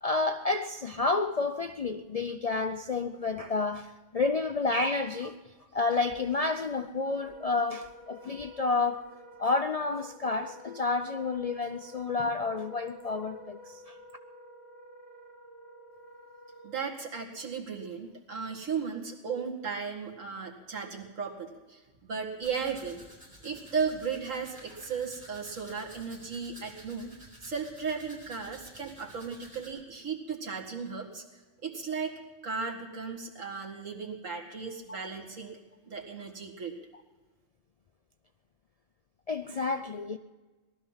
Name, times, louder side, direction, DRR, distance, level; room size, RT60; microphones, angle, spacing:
voice 1, 0.0-5.4 5.7-9.0 9.4-14.0 39.3-40.2, left 3 dB, 55° left, 0.4 m, -30 dB
Wind instrument woodwind instrument, 7.0-17.0, equal, 35° left, 3.0 m, -51 dB
voice 2, 16.6-23.0 23.4-27.1 27.4-35.6 35.9-36.7, right 5 dB, 85° right, 2.3 m, -36 dB
Domestic sounds home sounds, 22.4-29.7, right 1 dB, 30° right, 6.5 m, -52 dB
18.5 x 12.5 x 5.6 m
omnidirectional pair, 1.3 m